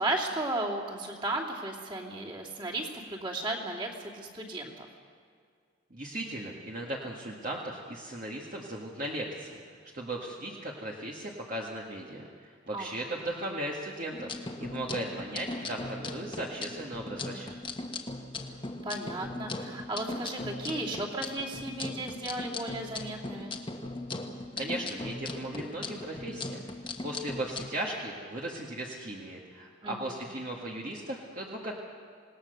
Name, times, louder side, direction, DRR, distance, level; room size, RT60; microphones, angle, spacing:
voice 1, 0.0-4.9 12.7-13.3 18.8-23.5 29.8-30.1, right 2 dB, 25° right, -2 dB, 2.9 m, -35 dB
voice 2, 5.9-9.6 9.9-17.6 24.6-26.7 27.0-31.8, right 1 dB, 45° right, -2 dB, 1.9 m, -37 dB
sound 1, 14.1-27.7, left 2 dB, 25° left, 1.3 m, -39 dB
26.0 x 19.0 x 6.7 m, 2.2 s
head